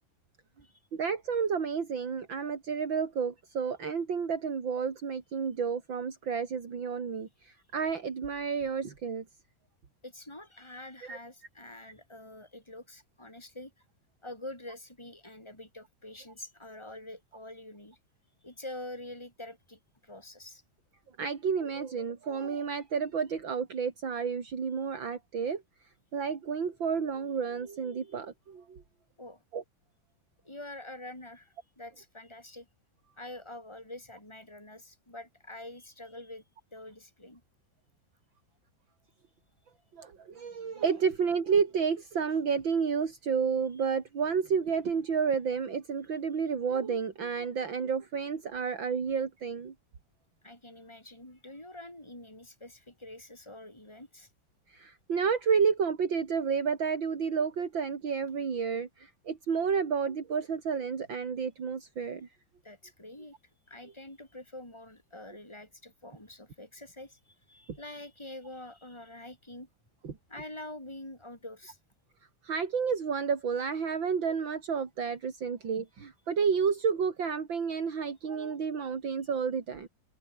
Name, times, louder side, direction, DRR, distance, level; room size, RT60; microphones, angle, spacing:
voice 1, 0.9-9.2 11.0-11.2 21.2-25.6 26.1-28.8 29.5-29.6 39.9-49.7 54.7-62.3 70.0-70.2 72.4-79.9, right 6 dB, 65° right, 3.3 m, -31 dB
voice 2, 10.0-13.7 14.2-18.0 18.4-20.6 29.2-29.4 30.4-32.7 33.2-36.4 36.7-37.4 50.4-54.3 62.6-63.3 63.7-69.7 70.3-71.8, left 1 dB, 10° left, 7.2 m, -46 dB
open air
omnidirectional pair, 2.3 m